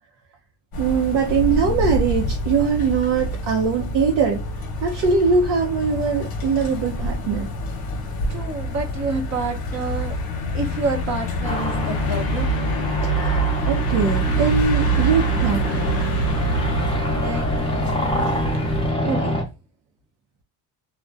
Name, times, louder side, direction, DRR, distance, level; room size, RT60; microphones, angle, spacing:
sound 1, 0.7-18.9, right 2 dB, 50° left, 0.8 m, -26 dB
voice 1, 0.8-4.4 4.8-7.5 13.0-15.9, right 5 dB, 75° right, 0.7 m, -22 dB
voice 2, 8.3-10.2 10.5-12.6 17.0-18.4 19.0-19.4, right 4 dB, 35° right, 0.7 m, -29 dB
sound 2, 11.4-19.4, left 1 dB, 10° left, 0.5 m, -26 dB
2.4 x 2.1 x 2.4 m
cardioid pair, 115°, 47 cm